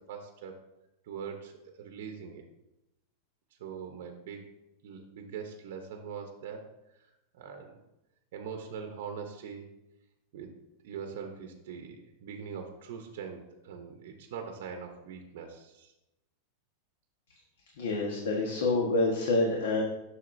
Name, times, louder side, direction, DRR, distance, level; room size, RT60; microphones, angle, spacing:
voice 1, 0.1-0.5 1.0-2.4 3.6-4.4 4.8-6.7 7.0-7.8 8.3-9.7 10.3-10.5 10.8-15.9, right 6 dB, 55° right, 4 dB, 0.8 m, -42 dB
voice 2, 17.8-19.8, left 2 dB, 90° left, -1 dB, 1.2 m, -27 dB
7.4 x 6.4 x 2.6 m, 0.93 s
supercardioid pair, 170°, 0 cm